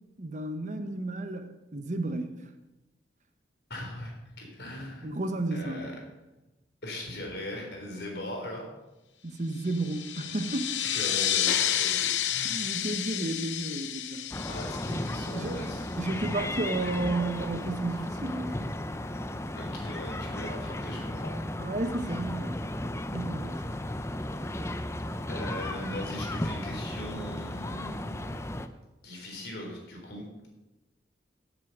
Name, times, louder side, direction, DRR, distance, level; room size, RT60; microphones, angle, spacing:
voice 1, 0.2-2.3 5.0-5.9 9.2-10.8 12.4-14.3 15.3-15.6 16.0-18.7 21.6-22.6 23.1-23.6, right 2 dB, 40° right, 7 dB, 1.0 m, -32 dB
voice 2, 3.7-5.1 5.5-5.9 6.8-8.7 10.8-12.8 14.5-15.9 19.6-21.4 25.3-28.2 29.0-30.2, left 1 dB, 60° left, 0 dB, 4.1 m, -39 dB
sound 1, 9.7-15.9, left 10 dB, 85° left, 0.8 m, -30 dB
sound 2, 14.3-28.7, left 1 dB, 15° left, 0.6 m, -35 dB
15.5 x 7.8 x 6.0 m, 1.0 s
head